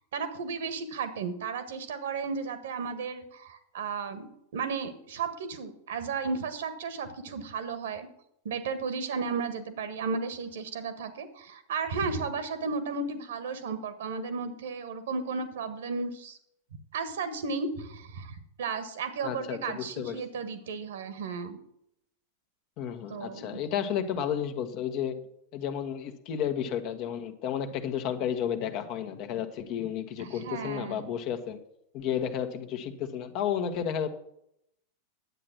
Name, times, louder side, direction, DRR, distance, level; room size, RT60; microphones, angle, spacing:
voice 1, 0.0-8.1 8.4-16.4 16.9-21.6 23.1-23.6 30.2-31.1, right 5 dB, 60° right, 12 dB, 1.5 m, -34 dB
voice 2, 19.2-20.2 22.8-25.2 25.5-31.6 31.9-34.1, left 9 dB, 40° left, 7 dB, 1.3 m, -32 dB
11.0 x 8.7 x 5.9 m, 0.74 s
figure-of-eight pair, 90°, 0 cm